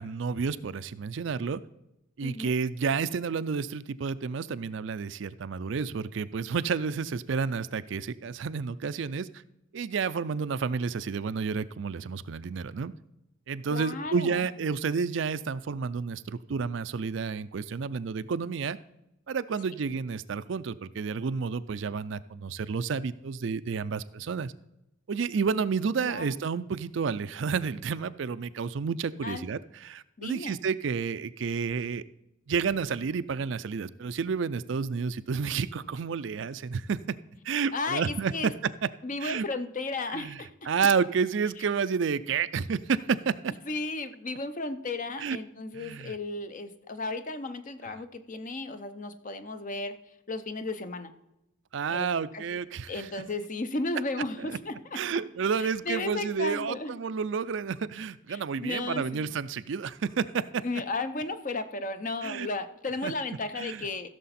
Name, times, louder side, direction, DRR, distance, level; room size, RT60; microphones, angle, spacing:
voice 1, 0.0-1.6 2.2-9.3 9.7-12.9 13.5-18.8 19.3-24.5 25.1-32.0 32.5-37.0 37.4-38.5 38.8-38.9 39.2-39.5 40.1-40.4 40.7-43.5 45.2-45.4 45.7-46.2 51.7-53.1 54.4-54.6 54.9-60.6 62.2-62.5 63.0-63.1 63.6-63.9, right 5 dB, 65° right, 14 dB, 0.4 m, -30 dB
voice 2, 2.2-2.5 13.7-14.4 26.0-26.3 29.2-29.4 30.2-30.6 37.7-38.5 39.0-40.7 43.7-50.0 50.3-51.1 51.9-52.1 52.3-52.4 52.9-54.7 55.6-56.9 58.3-59.0 60.6-64.1, left 3 dB, 40° left, 10 dB, 0.7 m, -34 dB
15.0 x 6.8 x 4.2 m, 0.87 s
head